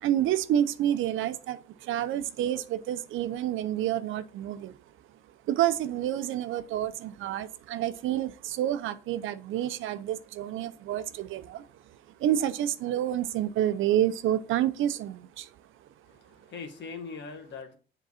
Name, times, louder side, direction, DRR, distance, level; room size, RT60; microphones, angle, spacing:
voice 1, 0.0-4.8 5.4-15.5 15.8-15.9, right 11 dB, 85° right, 0.6 m, -29 dB
voice 2, 16.1-17.7, left 5 dB, 65° left, 1.6 m, -41 dB
7.3 x 3.9 x 4.1 m
cardioid pair, 90°, 20 cm